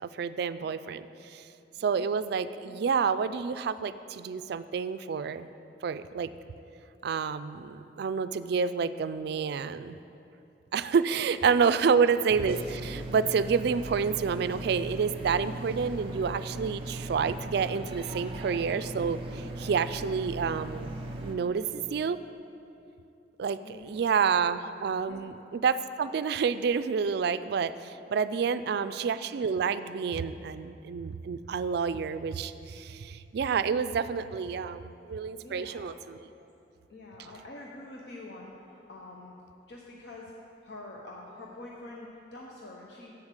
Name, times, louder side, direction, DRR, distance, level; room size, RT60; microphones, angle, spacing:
voice 1, 0.0-1.5 1.8-5.5 5.8-6.3 7.0-10.0 10.7-20.9 21.2-22.2 23.4-36.2, right 6 dB, 60° right, 13 dB, 0.3 m, -29 dB
voice 2, 1.8-2.1 18.3-18.5 23.6-24.1 25.1-25.3 28.4-28.9 35.4-35.9 36.9-39.3 39.7-40.3 40.6-43.1, left 2 dB, 65° left, -2 dB, 0.8 m, -46 dB
sound 1, 12.3-21.4, right 1 dB, 30° right, 0.8 m, -38 dB
7.8 x 7.1 x 6.6 m, 2.7 s
head